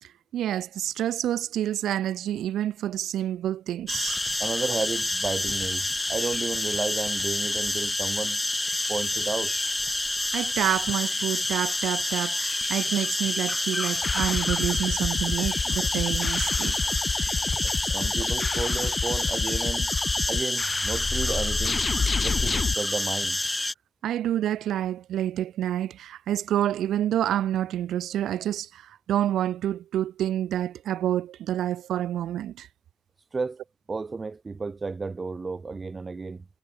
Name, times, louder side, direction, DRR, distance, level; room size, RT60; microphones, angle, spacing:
voice 1, 0.0-4.2 10.3-16.8 24.0-32.7, right 11 dB, 75° right, 0.3 m, -28 dB
sound 1, 3.9-23.7, left 2 dB, 10° left, 0.6 m, -28 dB
voice 2, 4.4-8.4 8.9-9.5 17.6-19.9 20.3-21.8 22.2-23.4 33.3-36.5, right 4 dB, 30° right, 1.5 m, -33 dB
sound 2, 14.0-22.7, left 5 dB, 40° left, 1.2 m, -29 dB
cardioid pair, 90°, 0 cm